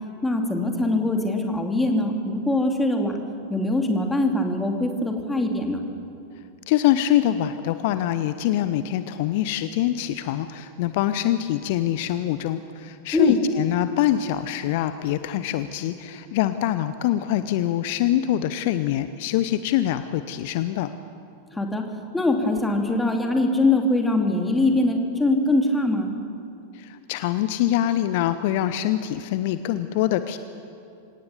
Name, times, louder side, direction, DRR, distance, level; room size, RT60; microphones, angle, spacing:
voice 1, 0.2-3.2 3.5-5.9 13.1-13.4 21.5-21.9 22.1-26.1, left 2 dB, 10° left, 3 dB, 2.6 m, -22 dB
voice 2, 6.7-20.9 26.7-30.4, left 12 dB, 50° left, 12 dB, 0.7 m, -24 dB
26.5 x 17.5 x 7.1 m, 2.6 s
figure-of-eight pair, 90°, 0 cm